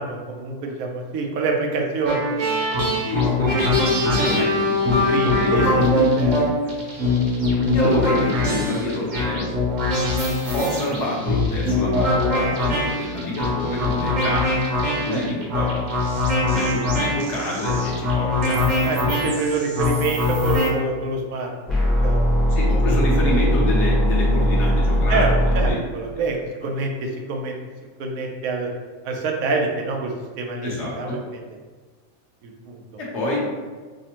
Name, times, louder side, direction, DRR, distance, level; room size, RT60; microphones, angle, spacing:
voice 1, 0.0-2.5 5.1-6.4 15.1-15.3 18.8-22.3 25.1-27.5 28.0-28.7 29.0-31.4 32.4-32.8, right 3 dB, 90° right, 1 dB, 1.1 m, -26 dB
sound 1, 2.0-20.7, left 2 dB, 45° right, 0.7 m, -22 dB
voice 2, 3.0-3.6 3.8-5.9 7.7-9.5 10.5-15.7 16.5-18.6 19.0-19.1 22.5-25.8 30.6-31.2 33.0-33.5, left 1 dB, 60° left, -4 dB, 1.1 m, -27 dB
sound 2, 21.7-25.7, equal, ahead, 0.5 m, -19 dB
5.0 x 2.1 x 2.8 m, 1.4 s
omnidirectional pair, 1.4 m